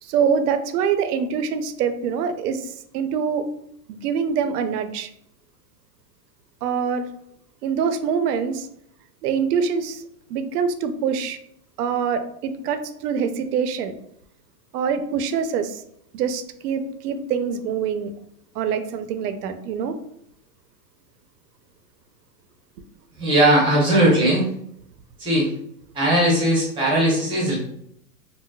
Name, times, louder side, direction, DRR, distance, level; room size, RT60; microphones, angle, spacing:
voice 1, 0.0-3.4 3.9-5.1 6.6-7.1 7.6-8.7 9.2-10.0 10.3-11.4 11.8-13.9 14.7-15.8 16.1-18.1 18.5-20.0, right 6 dB, 75° right, 9 dB, 0.6 m, -24 dB
voice 2, 23.2-24.5 25.2-25.5 25.9-27.5, right 1 dB, 10° right, -4 dB, 0.6 m, -18 dB
3.8 x 2.0 x 2.2 m, 0.75 s
supercardioid pair, 155°, 47 cm